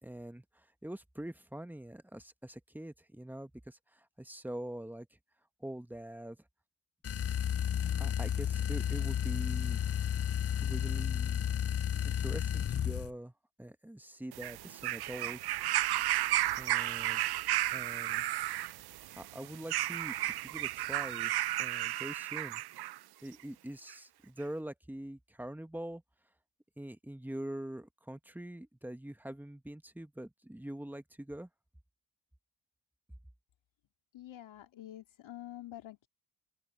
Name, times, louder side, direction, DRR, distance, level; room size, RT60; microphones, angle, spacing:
voice 1, 0.0-5.1 5.6-6.4 8.0-9.8 10.6-11.5 12.0-13.3 13.6-15.6 16.6-17.2 17.7-18.3 19.2-21.3 21.6-22.6 23.2-26.0 26.8-31.5, right 1 dB, 5° right, 1.3 m, -44 dB
sound 1, 7.0-13.1, left 9 dB, 30° left, 0.5 m, -32 dB
sound 2, 14.3-23.0 23.9-24.0, right 15 dB, 55° right, 0.5 m, -33 dB
voice 2, 34.1-36.1, left 13 dB, 70° left, 2.3 m, -47 dB
open air
cardioid pair, 70°, 47 cm